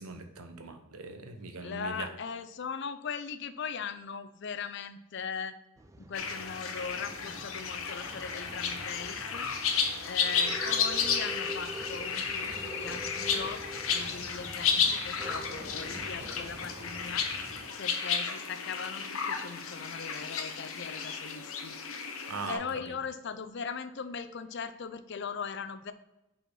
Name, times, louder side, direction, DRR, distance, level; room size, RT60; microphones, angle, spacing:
voice 1, 0.0-2.1 22.3-23.0, right 4 dB, 90° right, 6 dB, 1.0 m, -40 dB
voice 2, 1.6-5.6 6.0-9.5 10.0-17.3 17.8-21.7 22.5-25.9, left 6 dB, 50° left, 12 dB, 0.4 m, -39 dB
Male speech man speaking / Chatter / Rattle, 5.8-17.7, right 1 dB, 15° right, 0.3 m, -45 dB
sound 1, 6.1-22.5, left 6 dB, 70° left, 0.9 m, -33 dB
5.4 x 4.4 x 6.0 m, 0.94 s
head